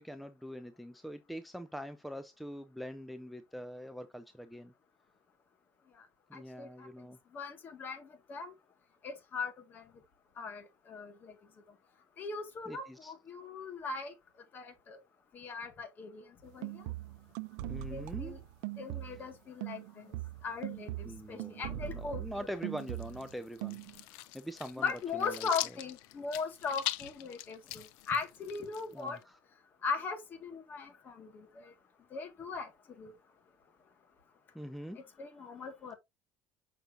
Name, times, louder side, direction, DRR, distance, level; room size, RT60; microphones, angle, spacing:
voice 1, 0.0-4.7 6.3-7.2 12.7-13.1 17.7-18.4 21.0-25.5 27.6-27.7 28.9-29.4 34.5-35.0, equal, ahead, 0.4 m, -44 dB
voice 2, 6.3-6.7 7.3-8.5 9.0-9.8 10.4-11.3 12.2-14.1 14.5-15.0 15.3-16.2 16.5-16.8 17.9-18.4 18.8-20.1 20.4-20.9 21.3-22.2 24.8-29.2 29.8-31.5 32.1-32.7 33.0-33.1 35.2-36.0, left 5 dB, 30° left, 1.7 m, -39 dB
sound 1, 16.5-19.3 19.6-23.3 23.6-24.0, right 14 dB, 85° right, 0.5 m, -41 dB
sound 2, 22.8-29.2, left 16 dB, 90° left, 0.6 m, -42 dB
6.6 x 5.9 x 2.6 m
cardioid pair, 145°, 6 cm